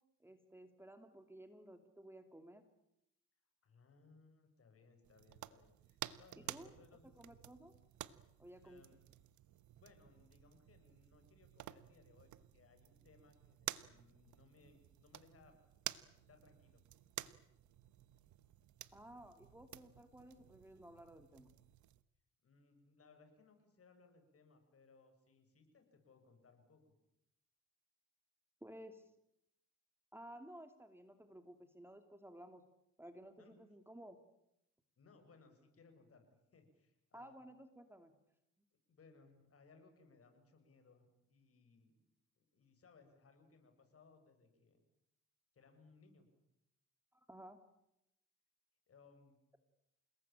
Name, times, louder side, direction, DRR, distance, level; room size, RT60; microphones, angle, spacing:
voice 1, 0.2-2.7 6.4-6.7 7.2-7.7 8.4-8.8 18.9-21.5 28.6-29.1 30.1-32.6 33.0-34.2 37.1-38.1 47.1-47.6, right 1 dB, 10° right, 8 dB, 2.5 m, -55 dB
voice 2, 3.6-7.0 8.6-9.0 9.8-15.6 16.1-16.8 22.4-26.9 33.4-33.5 35.0-37.4 38.9-42.0 42.4-44.8 45.5-46.3 48.9-49.4, left 4 dB, 50° left, 7 dB, 7.1 m, -66 dB
sound 1, 5.0-22.0, right 13 dB, 70° right, 1.2 m, -52 dB
29.0 x 19.5 x 9.0 m, 0.82 s
cardioid pair, 90°, 30 cm